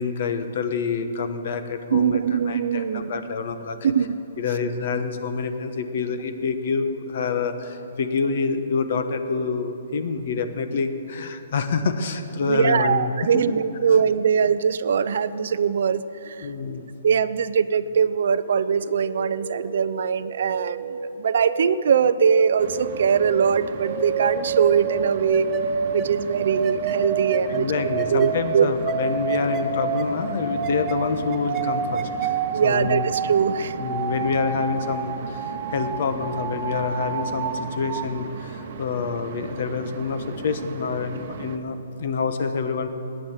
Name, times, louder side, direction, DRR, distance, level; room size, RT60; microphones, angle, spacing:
voice 1, 0.0-2.2 2.5-3.8 4.4-13.6 16.4-16.9 27.5-33.1 33.8-42.9, left 5 dB, 45° left, 8 dB, 1.2 m, -27 dB
voice 2, 1.9-3.2 3.8-4.2 12.5-16.5 17.0-25.5 25.9-27.7 28.1-28.7 32.5-33.8, right 7 dB, 55° right, 14 dB, 0.6 m, -22 dB
sound 1, 18.9-38.0, right 5 dB, 15° right, 0.8 m, -29 dB
sound 2, 22.6-41.6, right 5 dB, 40° right, 1.0 m, -37 dB
18.0 x 10.0 x 7.4 m, 2.9 s
hypercardioid pair, 175°, 0 cm